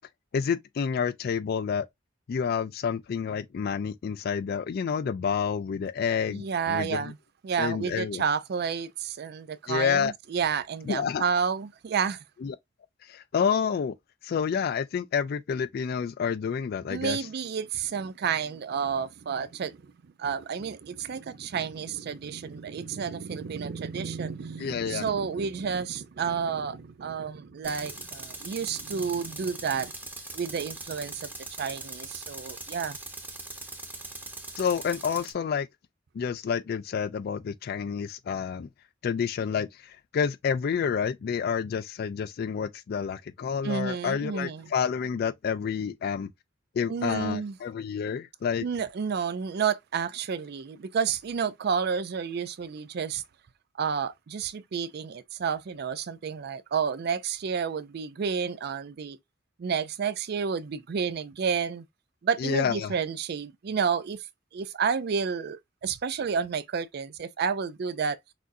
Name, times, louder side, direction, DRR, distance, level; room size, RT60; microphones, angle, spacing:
voice 1, 0.3-1.9 2.3-7.1 7.6-8.2 9.7-10.1 10.8-11.2 12.4-12.6 13.0-13.9 14.2-17.2 24.6-25.1 34.6-35.7 36.1-38.7 39.0-46.3 46.8-48.7 62.4-62.9, left 6 dB, 55° left, 0.3 m, -29 dB
voice 2, 6.3-7.1 7.4-12.2 16.9-19.8 20.2-29.9 30.3-31.3 31.6-33.0 43.6-44.7 46.9-47.6 48.6-53.2 53.8-59.2 59.6-61.8 62.2-64.3 64.5-68.2, right 6 dB, 55° right, 0.4 m, -30 dB
Tools, 27.6-35.3, right 2 dB, 10° right, 0.9 m, -41 dB
6.0 x 2.6 x 2.6 m
head